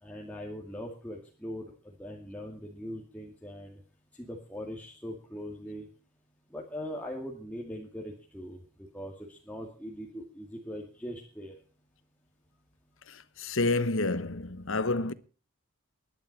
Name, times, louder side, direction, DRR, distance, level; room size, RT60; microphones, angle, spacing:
voice 1, 0.0-3.8 4.1-5.9 6.5-11.5, equal, 5° left, 2.3 m, -41 dB
voice 2, 13.1-15.1, left 2 dB, 60° left, 1.1 m, -29 dB
21.5 x 11.5 x 4.2 m
head